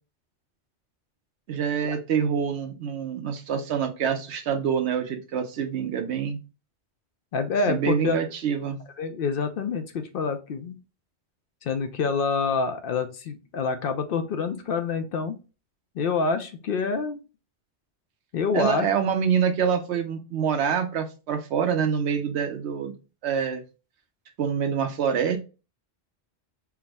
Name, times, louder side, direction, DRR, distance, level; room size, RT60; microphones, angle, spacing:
voice 1, 1.5-6.4 7.7-8.8 18.5-22.9 23.2-23.6 24.4-25.4, right 7 dB, 80° right, 0.9 m, -26 dB
voice 2, 7.3-8.2 9.0-10.8 11.6-15.4 16.0-17.2 18.3-18.9, left 5 dB, 60° left, 0.7 m, -27 dB
4.7 x 2.0 x 3.3 m
omnidirectional pair, 1.1 m